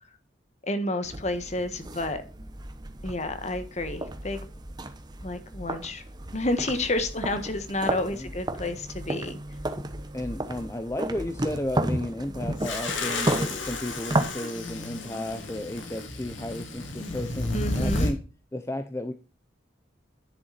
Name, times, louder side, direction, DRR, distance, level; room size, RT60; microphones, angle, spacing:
voice 1, 0.6-2.2 3.0-4.5 5.2-6.0 6.3-9.4 17.5-18.1, left 1 dB, 35° left, 1.4 m, -30 dB
sound 1, 1.0-14.3, right 1 dB, 20° right, 1.0 m, -33 dB
voice 2, 7.8-8.3 10.1-18.2 18.5-19.1, left 1 dB, 15° left, 0.7 m, -33 dB
sound 2, 12.6-18.1, left 2 dB, 85° left, 2.8 m, -32 dB
10.5 x 7.0 x 4.2 m
head